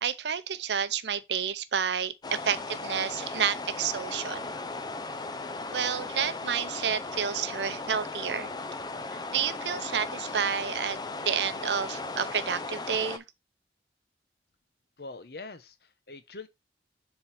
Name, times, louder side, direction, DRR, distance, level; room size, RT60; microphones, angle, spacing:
voice 1, 0.0-4.4 5.7-8.5 9.1-13.2, right 7 dB, 80° right, 0.6 m, -30 dB
sound 1, 2.2-13.2, left 3 dB, 25° left, 0.5 m, -37 dB
voice 2, 15.0-16.5, left 3 dB, 60° left, 0.9 m, -43 dB
7.2 x 3.8 x 4.2 m
head